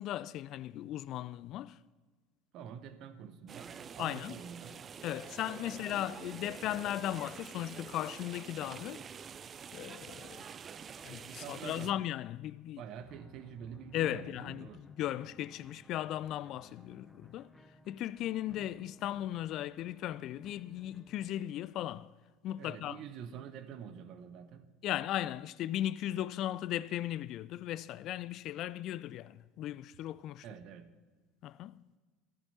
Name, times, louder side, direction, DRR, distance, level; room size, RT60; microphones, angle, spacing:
voice 1, 0.0-1.7 4.0-4.3 5.0-9.0 9.7-10.4 11.0-12.8 13.9-17.5 17.9-22.1 22.4-23.0 24.8-30.4 31.4-31.8, left 13 dB, 50° left, 0.3 m, -37 dB
voice 2, 2.5-4.8 5.6-5.7 11.3-12.0 12.8-14.8 22.6-24.7 30.4-30.9, right 8 dB, 55° right, 0.9 m, -47 dB
sound 1, 3.5-11.9, right 7 dB, 35° right, 0.4 m, -47 dB
sound 2, 13.0-21.3, left 2 dB, 5° left, 1.3 m, -59 dB
14.0 x 11.5 x 4.2 m
hypercardioid pair, 70°, 0 cm